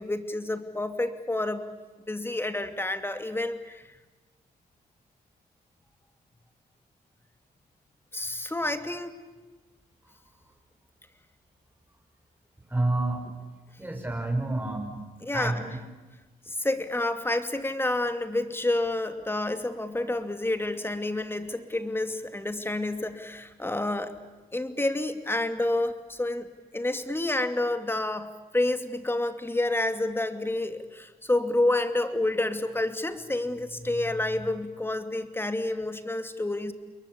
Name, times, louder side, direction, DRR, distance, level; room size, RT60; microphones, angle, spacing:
voice 1, 0.0-1.7 2.1-3.9 8.1-9.2 15.2-15.6 16.5-24.1 24.5-26.5 26.7-36.7, left 2 dB, 15° left, 8 dB, 2.7 m, -29 dB
voice 2, 12.7-13.3 13.8-15.8, right 2 dB, 10° right, 1 dB, 6.2 m, -29 dB
29.0 x 22.0 x 8.7 m, 1.2 s
cardioid pair, 85°, 17 cm